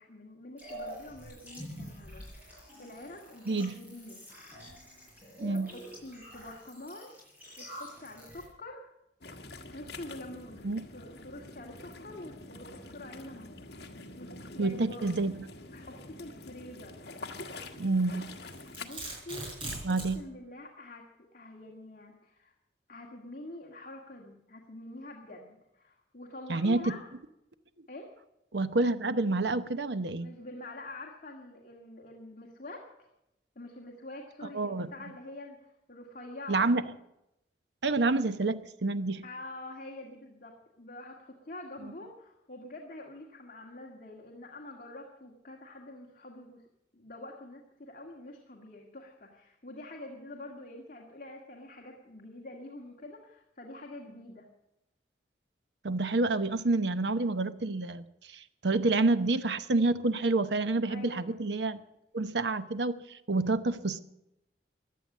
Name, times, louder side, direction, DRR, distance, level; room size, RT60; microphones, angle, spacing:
voice 1, 0.0-4.2 5.2-7.1 7.6-8.9 9.7-15.0 15.7-17.1 18.8-19.5 20.1-21.0 21.3-22.5 22.9-27.0 27.9-28.1 30.2-33.1 33.6-36.8 39.2-46.6 46.9-54.5 60.9-61.4, left 1 dB, 50° left, 0 dB, 2.0 m, -46 dB
sound 1, 0.6-8.4, equal, 10° right, 7.1 m, -47 dB
voice 2, 3.5-3.8 5.4-5.7 10.6-10.8 14.6-15.4 17.8-18.3 19.8-20.2 26.5-27.0 28.5-30.3 34.5-34.9 36.5-36.8 37.8-39.2 55.8-58.0 58.3-61.8 62.1-64.0, right 3 dB, 80° right, 12 dB, 0.9 m, -28 dB
sound 2, 9.2-18.9, left 2 dB, 65° left, 1.5 m, -46 dB
Domestic sounds home sounds, 18.2-20.2, right 1 dB, 30° right, 6.5 m, -39 dB
16.5 x 11.0 x 7.4 m, 0.86 s
head